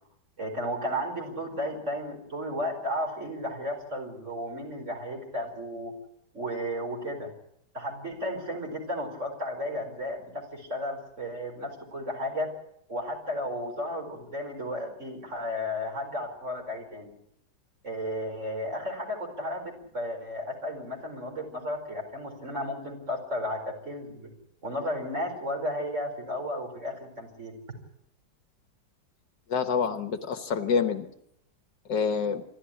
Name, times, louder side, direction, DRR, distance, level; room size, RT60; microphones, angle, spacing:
voice 1, 0.4-5.9 6.3-7.3 7.7-12.5 12.9-17.1 17.8-24.3 24.6-27.5, equal, 35° right, 3 dB, 5.2 m, -33 dB
voice 2, 29.5-31.1 31.9-32.4, left 6 dB, 65° left, 9 dB, 1.8 m, -27 dB
27.0 x 12.5 x 10.0 m, 0.75 s
omnidirectional pair, 2.1 m